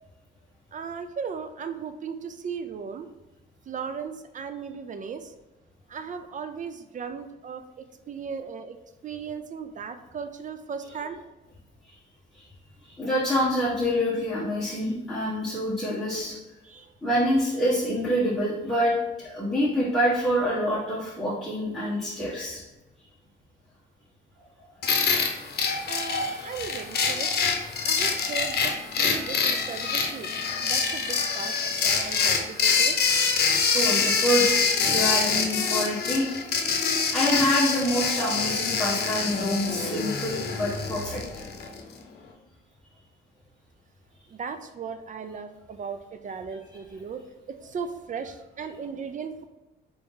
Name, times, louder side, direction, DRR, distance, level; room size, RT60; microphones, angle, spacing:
voice 1, 0.7-3.1 3.7-5.3 5.9-7.6 8.1-8.8 9.0-11.2 16.7-16.9 25.9-27.3 27.8-30.3 30.6-33.0 44.3-47.2 47.6-49.4, right 6 dB, 40° right, 9 dB, 0.5 m, -36 dB
voice 2, 12.8-16.4 17.0-22.6 33.7-36.4 37.1-41.4, equal, ahead, -9 dB, 1.3 m, -26 dB
sound 1, 24.8-41.8, left 5 dB, 55° left, 0.8 m, -25 dB
4.1 x 3.4 x 3.8 m, 1.1 s
cardioid pair, 90°, 20 cm